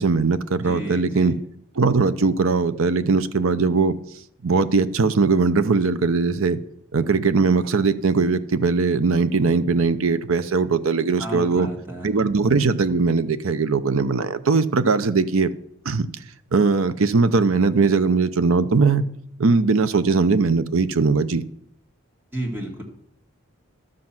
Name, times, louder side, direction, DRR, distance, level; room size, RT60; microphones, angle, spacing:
voice 1, 0.0-1.3 1.8-4.0 4.4-6.6 6.9-11.7 12.0-15.5 15.8-16.1 16.5-19.1 19.4-21.4, right 4 dB, 75° right, 13 dB, 0.7 m, -20 dB
voice 2, 0.6-1.4 11.2-12.1 22.3-22.8, right 1 dB, 10° right, -1 dB, 2.0 m, -32 dB
12.0 x 7.6 x 6.0 m, 0.71 s
head